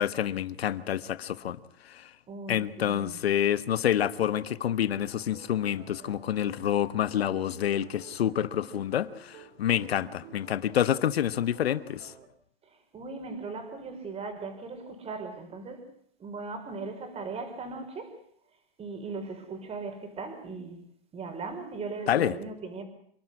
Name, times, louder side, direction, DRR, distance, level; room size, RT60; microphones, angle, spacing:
voice 1, 0.0-1.6 1.9-2.1 2.5-12.1 22.1-22.4, left 10 dB, 85° left, 1.3 m, -28 dB
voice 2, 2.3-3.2 12.9-15.8 16.2-18.1 18.8-20.8 21.1-22.8, right 4 dB, 20° right, 5.2 m, -38 dB
sound 1, 4.0-12.3, right 8 dB, 65° right, 4.0 m, -52 dB
28.0 x 12.5 x 9.8 m
hypercardioid pair, 135°, 30 cm